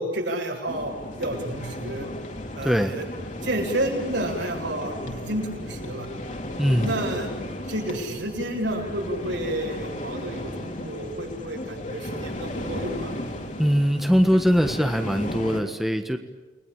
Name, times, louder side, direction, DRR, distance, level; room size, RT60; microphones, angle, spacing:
voice 1, 0.0-2.1 2.5-3.1 3.4-6.1 6.8-7.3 7.7-13.1, right 1 dB, 75° right, 0 dB, 7.8 m, -30 dB
sound 1, 0.7-15.6, left 1 dB, 40° left, 4.1 m, -35 dB
voice 2, 2.6-3.0 6.6-7.0 13.6-16.2, equal, ahead, 6 dB, 1.4 m, -21 dB
30.0 x 21.5 x 8.8 m, 1.3 s
head